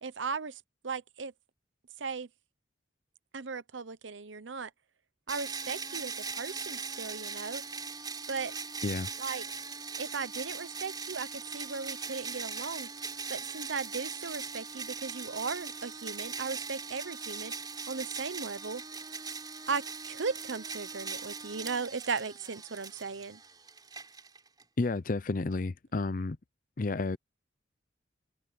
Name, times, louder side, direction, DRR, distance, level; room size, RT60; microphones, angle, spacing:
voice 1, 0.0-1.3 2.0-2.3 3.3-4.7 5.3-7.6 8.3-8.5 9.2-9.4 10.0-12.9 13.3-17.5 17.9-18.8 19.7-23.4, right 5 dB, 85° right, 0.9 m, -37 dB
sound 1, 5.3-24.6, right 5 dB, 20° right, 4.3 m, -40 dB
voice 2, 24.8-26.4 26.8-27.2, left 3 dB, 45° left, 0.6 m, -31 dB
open air
head